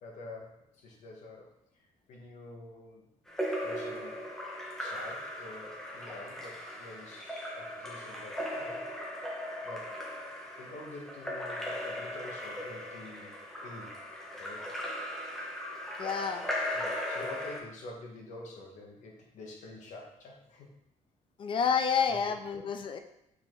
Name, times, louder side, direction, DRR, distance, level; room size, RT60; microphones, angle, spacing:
voice 1, 0.0-3.1 3.6-4.2 4.8-8.8 9.6-10.0 10.6-13.3 13.6-14.0 14.4-14.7 16.7-20.7 22.1-22.6, left 2 dB, 70° left, 0 dB, 1.6 m, -47 dB
Splash splatter / Drip / Trickle dribble, 3.3-17.6, left 1 dB, 5° left, 1.3 m, -38 dB
voice 2, 16.0-16.4 21.4-23.0, left 6 dB, 40° left, 8 dB, 0.5 m, -29 dB
5.8 x 4.6 x 3.8 m, 0.80 s
cardioid pair, 130°, 13 cm